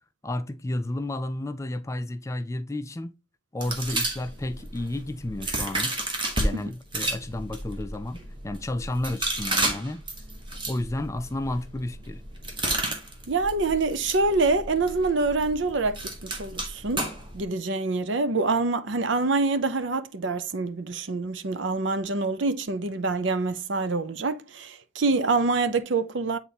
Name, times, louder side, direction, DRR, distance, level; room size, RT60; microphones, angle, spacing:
voice 1, 0.2-3.1 3.5-6.0 6.4-10.0 10.7-12.2, left 1 dB, 15° left, 0.3 m, -32 dB
sound 1, 3.6-6.5 6.9-17.4, right 2 dB, 25° right, 1.2 m, -32 dB
voice 2, 13.3-17.1 17.3-26.4, right 3 dB, 65° right, 0.6 m, -26 dB
8.2 x 4.0 x 2.9 m
head